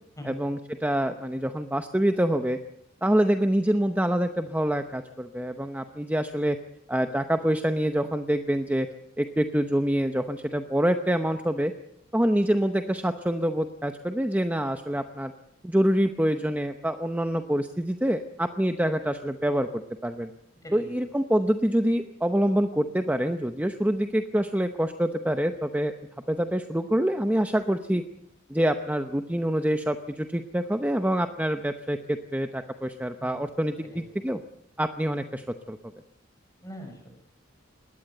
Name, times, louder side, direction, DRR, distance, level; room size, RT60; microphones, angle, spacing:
voice 1, 0.3-2.6 3.0-6.6 6.9-8.9 9.2-11.7 12.1-15.3 15.6-20.3 20.7-25.9 26.3-28.0 28.5-34.4 34.8-35.8, right 1 dB, 10° right, 7 dB, 0.8 m, -26 dB
voice 2, 20.6-21.1 33.2-33.3 33.8-34.3 36.6-37.1, equal, 15° left, 3 dB, 6.8 m, -43 dB
21.0 x 17.5 x 7.9 m, 0.80 s
head